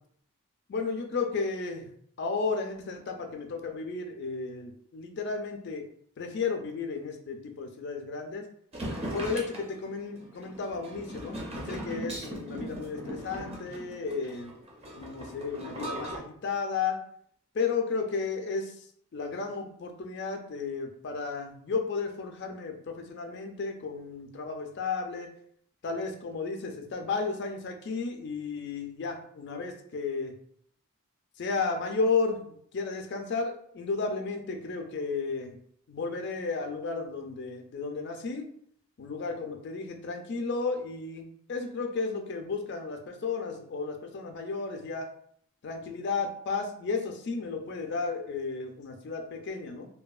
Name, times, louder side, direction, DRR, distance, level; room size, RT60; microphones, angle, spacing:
voice 1, 0.7-1.9 2.2-5.8 6.2-8.4 9.1-11.4 11.7-14.5 15.0-17.0 17.5-18.8 19.1-25.3 25.8-30.3 31.4-35.6 35.9-38.5 39.0-45.1 45.6-49.9, left 4 dB, 50° left, 4 dB, 0.4 m, -33 dB
sound 1, 8.7-16.2, right 1 dB, 30° right, 0.5 m, -38 dB
2.6 x 2.3 x 2.3 m, 0.65 s
head